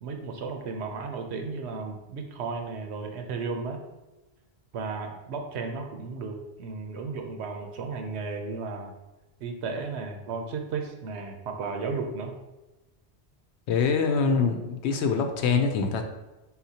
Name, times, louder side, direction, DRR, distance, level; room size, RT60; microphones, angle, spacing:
voice 1, 0.0-3.8 4.7-8.9 9.4-12.3, right 4 dB, 85° right, 4 dB, 0.9 m, -34 dB
voice 2, 13.7-16.0, left 5 dB, 85° left, 6 dB, 0.9 m, -24 dB
4.3 x 4.0 x 2.8 m, 1.0 s
omnidirectional pair, 1.1 m